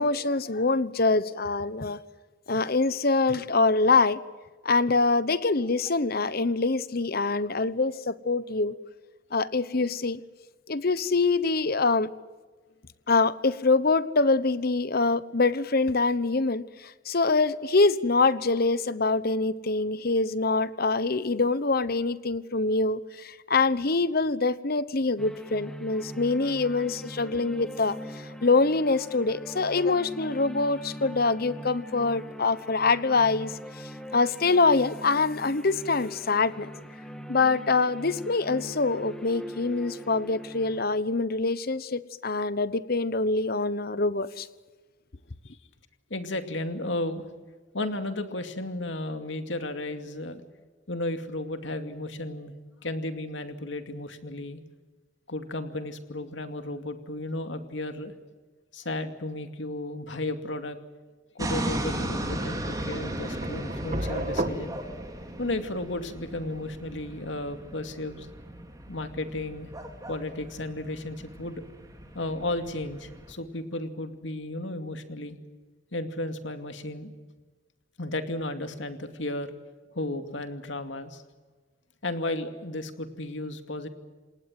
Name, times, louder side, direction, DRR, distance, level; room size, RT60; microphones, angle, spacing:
voice 1, 0.0-2.0 2.5-4.2 4.6-8.7 9.3-10.2 10.7-12.1 13.1-36.7 37.3-44.5, left 3 dB, 50° left, 16 dB, 1.1 m, -25 dB
sound 1, 25.2-40.8, equal, 5° left, 2.1 m, -42 dB
voice 2, 46.1-47.3 47.7-50.4 50.9-52.5 52.8-54.6 55.3-58.1 58.7-60.8 61.3-64.7 65.4-68.3 68.9-69.7 70.1-71.6 72.1-75.4 75.9-77.1 78.0-79.5 79.9-81.2 82.0-83.9, left 2 dB, 70° left, 7 dB, 2.5 m, -34 dB
sound 2, 61.4-73.3, right 1 dB, 20° right, 3.5 m, -37 dB
sound 3, 61.6-67.3, right 1 dB, 40° right, 2.0 m, -36 dB
28.0 x 19.5 x 7.8 m, 1.3 s
head